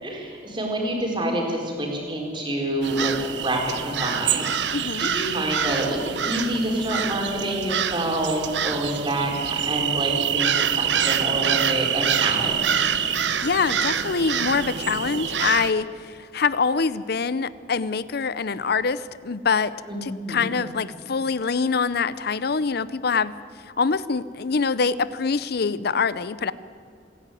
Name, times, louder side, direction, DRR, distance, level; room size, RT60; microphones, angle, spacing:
voice 1, 0.0-3.1 3.4-13.1 19.9-20.5, right 1 dB, 25° right, 0 dB, 4.3 m, -27 dB
sound 1, 2.8-15.7, right 8 dB, 75° right, 0.9 m, -26 dB
voice 2, 4.7-5.1 13.4-19.7 20.0-23.3 23.8-26.5, left 5 dB, 60° left, 17 dB, 0.7 m, -24 dB
27.0 x 11.0 x 9.2 m, 2.4 s
head